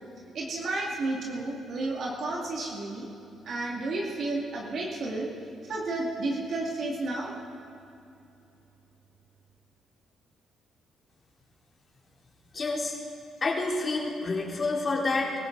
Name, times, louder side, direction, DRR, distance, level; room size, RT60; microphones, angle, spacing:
voice 1, 0.3-3.1 3.5-5.3 5.6-7.3, right 2 dB, 60° right, -3 dB, 2.3 m, -32 dB
voice 2, 12.5-13.0 13.4-15.3, left 3 dB, 35° left, -3 dB, 3.4 m, -28 dB
23.5 x 15.0 x 4.0 m, 2.8 s
cardioid pair, 90°, 0 cm